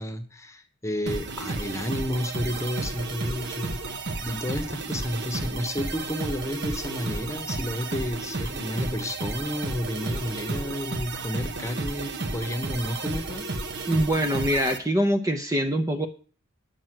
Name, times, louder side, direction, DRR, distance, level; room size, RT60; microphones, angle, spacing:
voice 1, 0.0-3.8 4.2-13.5, left 1 dB, 15° left, 8 dB, 1.2 m, -31 dB
sound 1, 1.1-14.8, right 2 dB, 55° right, 1.0 m, -32 dB
voice 2, 13.9-16.1, equal, 15° right, 5 dB, 0.7 m, -24 dB
9.3 x 6.3 x 7.7 m, 0.40 s
head